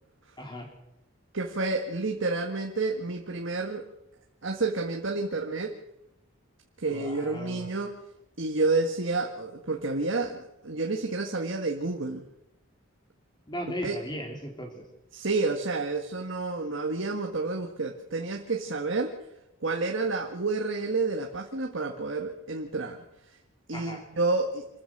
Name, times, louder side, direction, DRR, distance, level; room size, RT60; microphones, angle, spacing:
voice 1, 0.4-0.7 6.9-7.6 13.5-14.8 23.7-24.0, equal, 20° left, 2 dB, 4.3 m, -37 dB
voice 2, 1.3-3.9 4.4-5.8 6.8-8.0 8.4-12.3 13.8-14.0 15.1-19.1 19.6-23.0 23.3-23.4 23.7-24.7, right 3 dB, 60° right, 3 dB, 1.7 m, -29 dB
27.0 x 14.5 x 6.7 m, 0.90 s
head